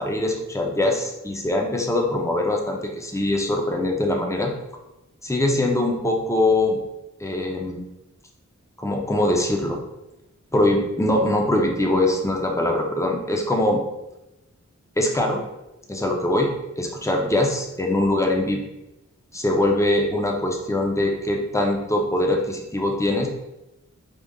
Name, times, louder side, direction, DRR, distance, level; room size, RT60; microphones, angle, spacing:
voice 1, 0.0-4.5 5.2-6.8 7.2-7.9 8.8-9.8 10.5-13.8 15.0-15.4 15.9-16.5 16.8-18.6 19.3-23.3, left 1 dB, 10° left, 1 dB, 0.7 m, -22 dB
5.3 x 2.4 x 3.6 m, 0.94 s
wide cardioid pair, 50°, 31 cm